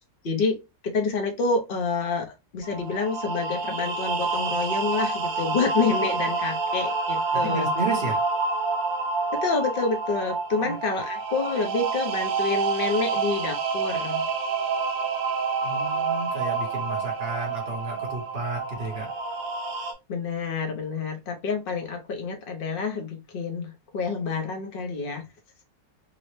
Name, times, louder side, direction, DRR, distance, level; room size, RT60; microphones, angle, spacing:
voice 1, 0.2-0.6 0.9-7.7 9.3-14.3 20.1-25.3, left 4 dB, 55° left, 0.6 m, -28 dB
sound 1, 2.6-19.9, right 4 dB, 70° right, 1.0 m, -28 dB
voice 2, 7.3-8.2 10.6-10.7 15.6-19.1, right 3 dB, 40° right, 0.8 m, -32 dB
3.8 x 2.0 x 3.1 m
omnidirectional pair, 1.9 m